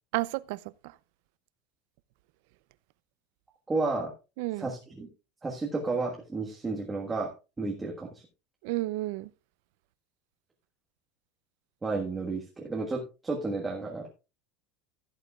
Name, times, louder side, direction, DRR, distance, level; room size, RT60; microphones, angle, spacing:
voice 1, 0.1-0.9 4.4-4.7 8.6-9.3, right 19 dB, 60° right, 0.5 m, -32 dB
voice 2, 3.7-4.1 4.6-5.1 5.4-7.3 7.6-8.2 11.8-14.1, right 3 dB, 10° right, 1.5 m, -32 dB
15.5 x 8.2 x 2.4 m
supercardioid pair, 160°, 0 cm